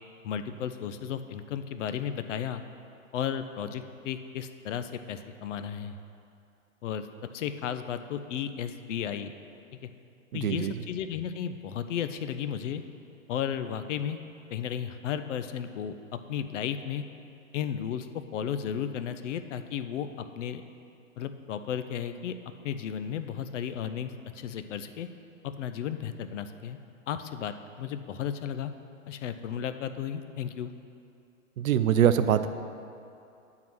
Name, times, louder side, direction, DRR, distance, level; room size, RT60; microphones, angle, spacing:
voice 1, 0.2-2.6 3.1-5.9 6.8-7.1 7.3-9.3 10.3-12.8 13.3-14.2 14.5-17.0 17.5-18.1 18.3-20.6 21.2-22.3 22.6-25.1 25.4-26.8 27.1-28.7 29.1-30.7, left 8 dB, 60° left, 10 dB, 0.6 m, -34 dB
voice 2, 10.3-10.8 31.6-32.5, right 9 dB, 85° right, 11 dB, 0.5 m, -24 dB
9.0 x 3.8 x 6.0 m, 2.6 s
hypercardioid pair, 130°, 41 cm